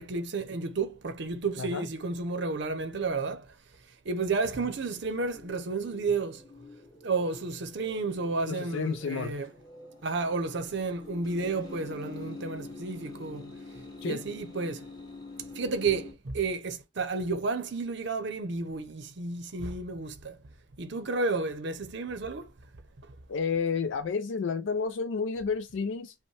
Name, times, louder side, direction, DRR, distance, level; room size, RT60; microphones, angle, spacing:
voice 1, 0.0-3.5 4.0-6.4 7.0-9.5 10.0-13.5 14.0-14.9 15.5-20.4 20.8-22.5 23.0-23.1, right 3 dB, 55° right, 0.7 m, -31 dB
sound 1, 4.5-16.1, left 3 dB, 20° left, 1.9 m, -46 dB
voice 2, 8.5-9.4 14.0-14.2 23.3-26.1, left 5 dB, 60° left, 0.4 m, -31 dB
5.2 x 2.2 x 3.2 m
head